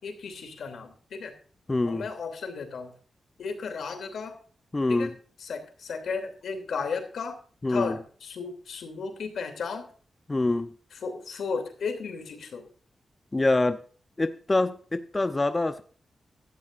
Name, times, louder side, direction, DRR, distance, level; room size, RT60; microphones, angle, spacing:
voice 1, 0.0-1.3 1.8-2.9 3.4-4.4 4.9-5.1 5.4-7.4 7.7-9.9 10.9-12.7, left 5 dB, 80° left, 2.9 m, -34 dB
voice 2, 1.7-2.0 4.7-5.1 7.6-8.0 10.3-10.7 13.3-13.8 14.2-15.8, left 2 dB, 20° left, 0.7 m, -25 dB
16.0 x 12.5 x 2.6 m
wide cardioid pair, 125°, 0 cm